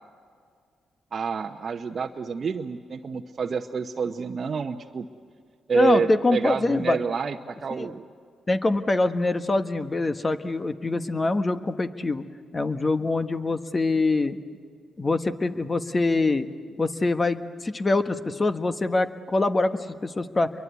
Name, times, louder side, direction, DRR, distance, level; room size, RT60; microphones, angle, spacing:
voice 1, 1.1-5.1 5.7-8.1, right 6 dB, 50° right, 3 dB, 1.0 m, -28 dB
voice 2, 5.7-7.0 7.8-7.9 8.5-12.2 12.5-14.4 15.0-16.5 16.8-20.5, left 2 dB, 35° left, 9 dB, 1.5 m, -24 dB
29.0 x 23.0 x 8.3 m, 2.1 s
supercardioid pair, 50°, 0 cm